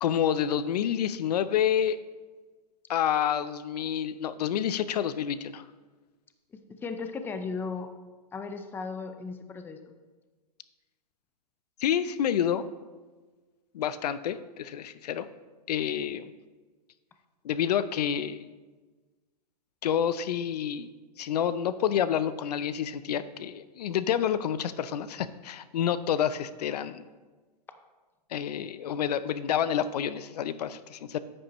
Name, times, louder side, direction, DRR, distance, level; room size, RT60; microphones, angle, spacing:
voice 1, 0.0-2.0 2.9-5.6 11.8-12.6 13.7-15.3 15.7-16.3 17.4-18.5 19.8-20.9 21.2-27.1 28.3-31.2, left 9 dB, 75° left, 14 dB, 0.5 m, -28 dB
voice 2, 6.8-7.9 8.3-9.9, left 4 dB, 10° left, 8 dB, 0.5 m, -36 dB
9.7 x 8.6 x 3.0 m, 1.3 s
hypercardioid pair, 135°, 21 cm